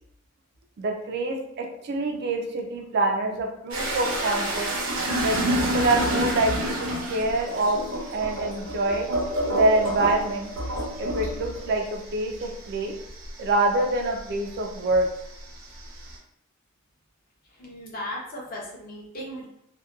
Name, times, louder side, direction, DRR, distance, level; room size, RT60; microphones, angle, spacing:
voice 1, 0.8-4.7 5.2-7.8 8.1-9.1 9.5-10.5 11.0-13.0 13.4-15.1, right 2 dB, 50° right, 2 dB, 0.4 m, -25 dB
sound 1, 3.7-14.6 15.0-16.1, right 1 dB, 75° right, 0.7 m, -29 dB
voice 2, 17.5-19.5, left 1 dB, 45° left, -2 dB, 0.7 m, -36 dB
2.7 x 2.2 x 2.3 m, 0.75 s
head